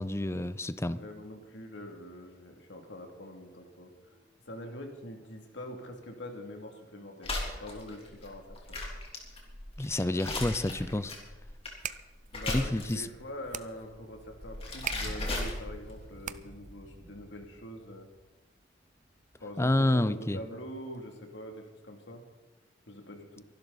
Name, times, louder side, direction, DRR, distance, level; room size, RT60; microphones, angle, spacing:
voice 1, 0.0-1.0 9.8-11.1 12.5-13.1 19.6-20.4, left 1 dB, 15° left, 14 dB, 0.6 m, -29 dB
voice 2, 0.8-4.2 4.5-7.3 7.6-8.8 12.3-18.1 19.4-22.2 22.9-23.5, left 1 dB, 80° left, 2 dB, 2.8 m, -44 dB
sound 1, 2.9-4.3 4.5-19.6 20.4-20.9, equal, 75° right, 1.7 m, -55 dB
sound 2, 7.2-13.2 14.2-16.0, left 2 dB, 35° left, 3.3 m, -37 dB
sound 3, 11.5-16.8, right 9 dB, 45° right, 0.6 m, -43 dB
24.0 x 12.0 x 4.1 m, 1.1 s
head